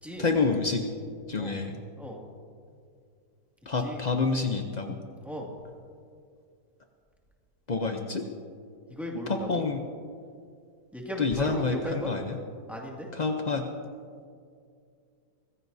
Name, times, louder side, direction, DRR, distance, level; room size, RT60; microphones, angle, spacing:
voice 1, 0.2-0.8 1.3-1.8 3.7-5.0 7.7-8.2 9.3-9.8 11.2-12.4 13.1-13.6, left 4 dB, 65° left, 4 dB, 0.4 m, -28 dB
voice 2, 8.9-9.6 10.9-12.1 12.7-13.1, equal, ahead, -2 dB, 2.0 m, -35 dB
24.0 x 15.5 x 2.7 m, 2.3 s
omnidirectional pair, 1.9 m